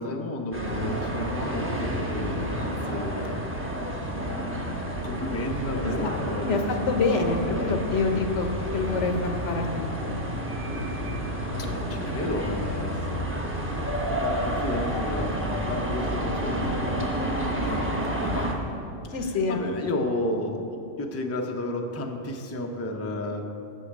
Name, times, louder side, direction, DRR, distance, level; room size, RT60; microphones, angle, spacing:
voice 1, 0.0-3.4 3.7-4.5 5.0-8.6 11.6-17.2 18.2-18.6 19.5-23.5, left 1 dB, 15° left, 2 dB, 0.6 m, -33 dB
sound 1, 0.5-18.5, equal, 10° right, 1.0 m, -30 dB
voice 2, 5.8-10.1 11.7-11.9 17.5-17.6 19.1-19.9, left 3 dB, 75° left, 5 dB, 1.2 m, -27 dB
8.3 x 6.1 x 7.3 m, 2.7 s
omnidirectional pair, 1.2 m